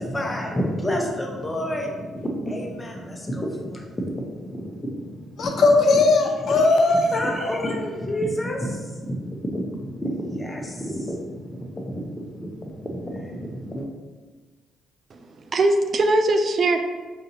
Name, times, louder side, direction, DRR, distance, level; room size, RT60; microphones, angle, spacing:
voice 1, 0.0-5.6 6.5-6.6 7.1-13.9, equal, 20° left, 0 dB, 0.8 m, -30 dB
voice 2, 5.4-7.6, left 3 dB, 60° left, 2 dB, 0.5 m, -19 dB
voice 3, 15.1-16.8, right 2 dB, 50° right, 6 dB, 0.3 m, -21 dB
5.0 x 2.6 x 2.8 m, 1.3 s
cardioid pair, 90°, 0 cm